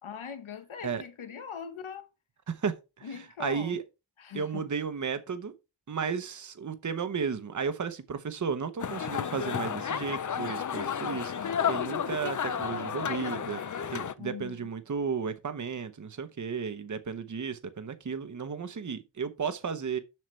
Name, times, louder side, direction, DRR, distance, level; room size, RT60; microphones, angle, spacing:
voice 1, 0.0-2.1 3.0-3.8 4.2-4.7 14.2-14.7, left 7 dB, 85° left, 1.1 m, -41 dB
voice 2, 2.5-3.1 3.4-3.8 4.3-5.5 5.9-20.0, right 6 dB, 40° right, 0.8 m, -34 dB
sound 1, 8.8-14.1, left 8 dB, 40° left, 0.5 m, -32 dB
7.6 x 6.5 x 3.2 m
wide cardioid pair, 115°, 47 cm